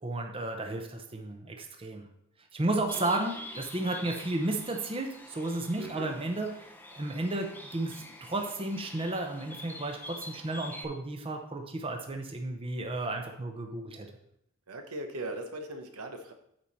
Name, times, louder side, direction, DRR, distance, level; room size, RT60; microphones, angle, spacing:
voice 1, 0.0-2.1 2.5-6.5 6.9-14.1, right 2 dB, 25° right, 3 dB, 0.8 m, -33 dB
Bird, 2.9-10.8, left 1 dB, 10° left, 0.6 m, -46 dB
voice 2, 5.8-6.1 14.7-16.3, right 2 dB, 80° right, 5 dB, 1.0 m, -39 dB
8.9 x 4.9 x 4.1 m, 0.74 s
head